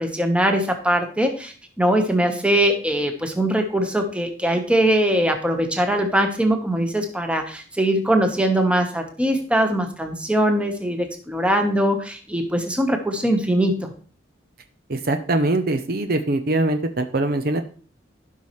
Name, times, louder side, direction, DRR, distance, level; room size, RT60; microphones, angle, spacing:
voice 1, 0.0-13.9, right 1 dB, 5° right, 4 dB, 1.1 m, -21 dB
voice 2, 14.9-17.6, right 2 dB, 50° right, 8 dB, 0.7 m, -22 dB
16.0 x 5.6 x 3.2 m, 0.39 s
head